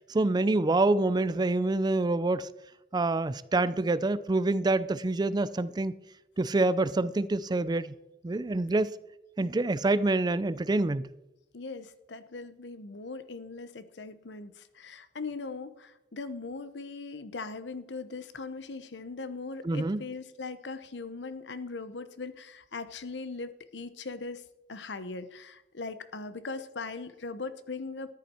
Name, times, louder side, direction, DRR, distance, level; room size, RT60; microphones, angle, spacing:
voice 1, 0.1-2.5 2.9-5.9 6.4-7.9 8.2-8.9 9.4-11.1 19.6-20.0, right 2 dB, 25° right, 0.4 m, -26 dB
voice 2, 11.5-24.4 24.7-28.1, left 3 dB, 85° left, 0.9 m, -40 dB
13.5 x 11.0 x 4.4 m
head